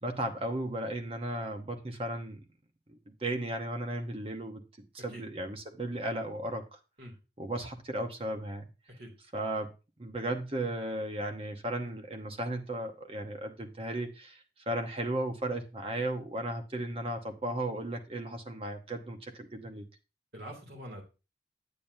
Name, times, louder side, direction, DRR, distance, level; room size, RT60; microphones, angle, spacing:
voice 1, 0.0-2.4 2.9-4.6 4.9-6.8 7.4-8.7 9.3-9.7 10.0-19.9, right 1 dB, 30° right, 0.9 m, -35 dB
voice 2, 20.3-21.0, equal, 60° right, 2.5 m, -44 dB
8.9 x 8.3 x 2.7 m
head